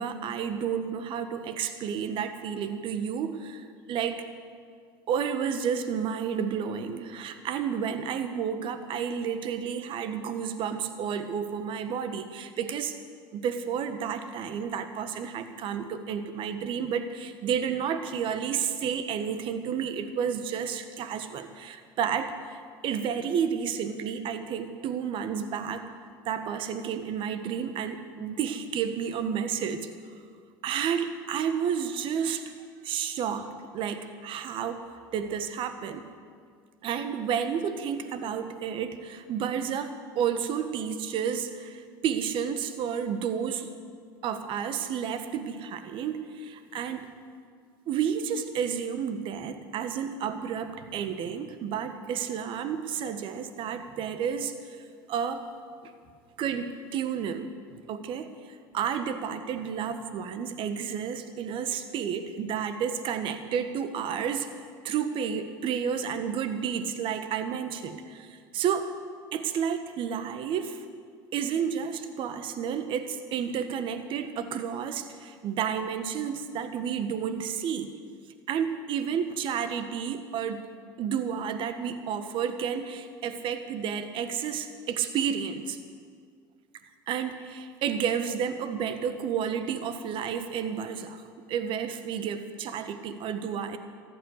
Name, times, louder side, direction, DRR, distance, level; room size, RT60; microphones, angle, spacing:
voice 1, 0.0-4.3 5.1-13.0 13.3-25.9 26.2-29.9 30.6-32.5 32.8-34.8 35.1-36.0 36.8-43.7 44.2-47.1 47.9-55.5 55.8-55.9 56.4-58.3 58.7-64.5 64.8-68.9 69.3-70.8 71.3-77.9 78.5-80.7 81.0-85.8 87.1-91.2 91.5-93.8, right 7 dB, 55° right, 9 dB, 1.4 m, -31 dB
14.5 x 11.0 x 8.1 m, 2.1 s
hypercardioid pair, 75°, 10 cm